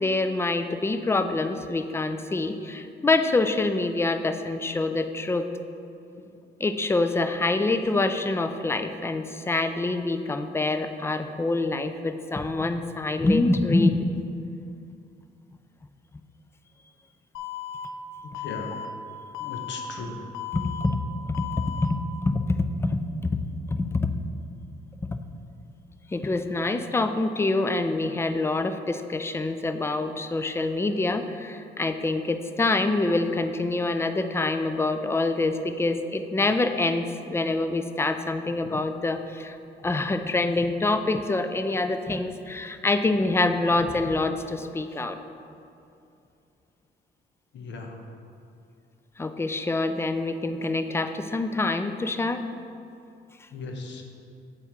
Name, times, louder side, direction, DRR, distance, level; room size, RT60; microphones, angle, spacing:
voice 1, 0.0-5.5 6.6-14.0 20.5-21.0 21.3-23.4 23.7-24.0 25.0-25.2 26.1-39.6 39.8-45.2 49.2-52.4, left 2 dB, 15° left, 8 dB, 0.3 m, -26 dB
Alarm, 17.3-17.8 18.3-18.8 19.3-19.8 20.3-20.8 21.3-21.8, left 11 dB, 80° left, 0.5 m, -35 dB
voice 2, 18.3-18.8 19.4-20.2 47.5-48.0 53.5-54.0, left 3 dB, 65° left, 3 dB, 0.8 m, -37 dB
8.1 x 4.4 x 3.6 m, 2.6 s
cardioid pair, 90°, 20 cm